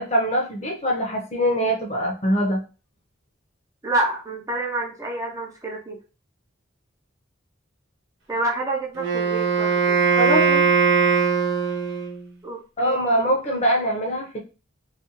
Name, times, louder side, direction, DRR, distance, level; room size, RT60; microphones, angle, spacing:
voice 1, 0.0-2.6 10.1-10.7 12.8-14.4, equal, 35° left, 0 dB, 0.6 m, -23 dB
voice 2, 3.8-6.0 8.3-10.0 12.4-13.2, right 2 dB, 15° right, -1 dB, 0.4 m, -28 dB
Wind instrument woodwind instrument, 9.0-12.3, right 5 dB, 55° right, 0.7 m, -20 dB
2.4 x 2.3 x 2.8 m, 0.33 s
head